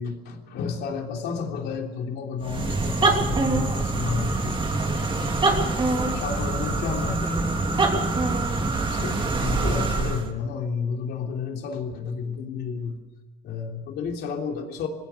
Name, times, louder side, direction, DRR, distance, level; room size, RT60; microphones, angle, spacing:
voice 1, 0.0-4.7 5.9-7.2 8.9-13.0 13.4-14.9, left 5 dB, 75° left, 3 dB, 3.2 m, -31 dB
sound 1, 2.4-10.3, right 3 dB, 30° right, 2.9 m, -24 dB
voice 2, 5.4-8.0, left 2 dB, 20° left, -5 dB, 5.5 m, -41 dB
21.0 x 16.5 x 8.1 m, 1.1 s
cardioid pair, 110°, 17 cm